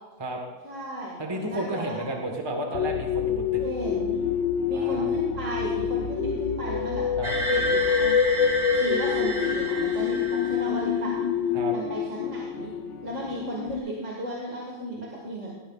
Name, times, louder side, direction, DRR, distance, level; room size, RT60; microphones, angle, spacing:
voice 1, 0.6-2.2 3.6-4.2 4.7-7.0 7.5-8.2 8.7-11.2 11.7-12.7 13.0-15.5, right 1 dB, 65° right, -4 dB, 2.2 m, -35 dB
voice 2, 1.2-3.6 4.7-5.2 7.2-7.3 11.5-11.7, right 1 dB, 20° right, 2 dB, 1.3 m, -32 dB
sound 1, 2.7-13.8, left 7 dB, 70° left, 1.0 m, -26 dB
sound 2, 7.2-11.0, equal, 85° right, 2.2 m, -31 dB
17.0 x 13.5 x 2.4 m, 1.3 s
omnidirectional pair, 1.4 m